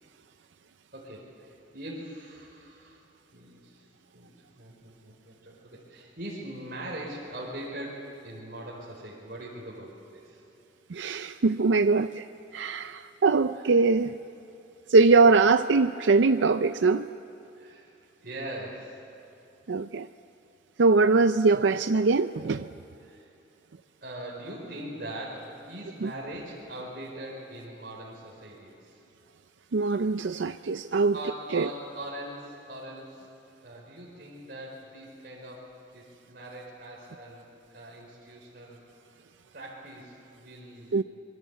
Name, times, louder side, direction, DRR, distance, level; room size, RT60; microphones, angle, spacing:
voice 1, 0.9-3.0 3.3-3.9 4.1-10.4 13.5-13.7 17.6-17.9 18.2-19.0 23.0-23.3 24.0-29.0 31.1-33.3 33.6-35.7 35.9-38.8 39.5-41.0, right 1 dB, 55° right, -4 dB, 4.6 m, -41 dB
voice 2, 10.9-12.2 12.5-14.1 14.9-17.1 19.7-20.1 20.8-22.7 26.0-26.1 29.7-31.1 31.5-31.7 40.9-41.0, right 4 dB, 85° right, 10 dB, 0.5 m, -22 dB
26.5 x 22.5 x 8.3 m, 2.8 s
head